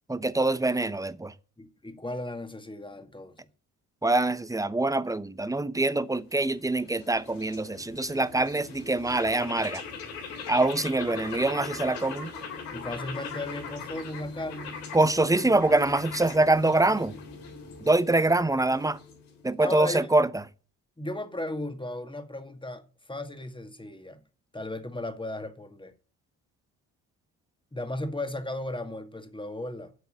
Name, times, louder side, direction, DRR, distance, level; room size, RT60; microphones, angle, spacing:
voice 1, 0.1-1.3 4.0-9.8 10.5-12.3 14.9-17.1 17.8-19.0 19.4-20.3, right 2 dB, 5° right, 1.0 m, -24 dB
voice 2, 1.6-3.4 12.7-14.8 19.6-20.1 21.0-24.2 24.5-25.9 27.7-29.9, left 1 dB, 10° left, 2.0 m, -35 dB
sound 1, 6.1-19.5, left 5 dB, 80° left, 3.6 m, -41 dB
8.2 x 8.1 x 9.0 m
hypercardioid pair, 45°, 47 cm